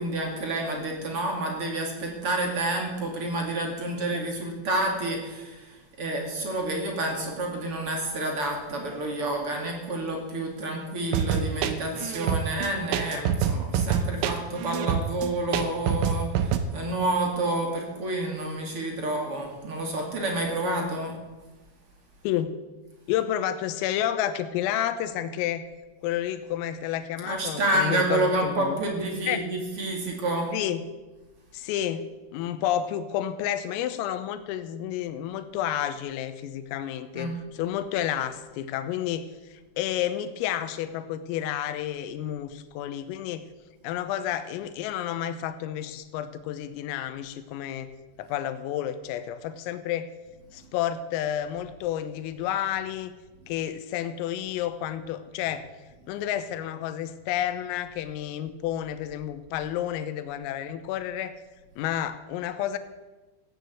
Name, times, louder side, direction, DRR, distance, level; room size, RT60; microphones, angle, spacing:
voice 1, 0.0-21.2 27.3-30.5 37.1-37.3, right 2 dB, 40° right, 1 dB, 2.1 m, -29 dB
sound 1, 11.1-16.6, right 8 dB, 80° right, 3.0 m, -26 dB
voice 2, 20.6-21.0 22.3-22.6 23.1-25.6 26.0-28.8 29.3-29.5 30.5-30.8 31.5-43.4 43.8-47.9 48.2-50.1 50.5-53.1 53.5-55.7 56.1-61.4 61.8-62.8, left 11 dB, 90° left, 11 dB, 3.6 m, -30 dB
15.5 x 9.3 x 7.8 m, 1.2 s
omnidirectional pair, 5.9 m